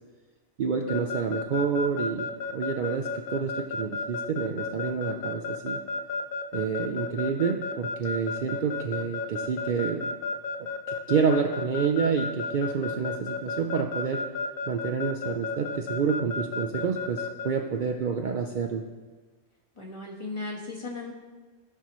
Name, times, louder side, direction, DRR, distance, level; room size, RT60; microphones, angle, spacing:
voice 1, 0.6-5.8 6.5-10.1 10.6-10.7 11.1-14.2 14.7-18.8, right 6 dB, 75° right, 3 dB, 0.4 m, -28 dB
Keyboard (musical) / Alarm, 0.9-17.5, left 4 dB, 55° left, 0.6 m, -32 dB
voice 2, 19.8-21.1, left 3 dB, 25° left, -2 dB, 1.2 m, -36 dB
14.5 x 5.6 x 3.0 m, 1.3 s
omnidirectional pair, 1.4 m